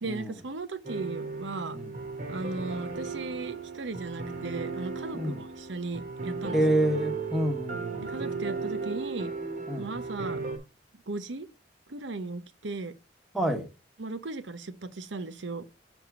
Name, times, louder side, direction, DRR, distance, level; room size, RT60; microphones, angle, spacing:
voice 1, 0.0-1.8 2.3-6.6 8.0-9.3 9.8-10.5 11.1-11.5 11.9-12.9 14.0-15.7, right 3 dB, 75° right, 0.8 m, -37 dB
sound 1, 0.8-10.6, right 4 dB, 45° right, 1.3 m, -35 dB
voice 2, 6.5-8.1 9.7-9.9 13.3-13.7, right 1 dB, ahead, 1.1 m, -28 dB
7.1 x 3.5 x 6.0 m
head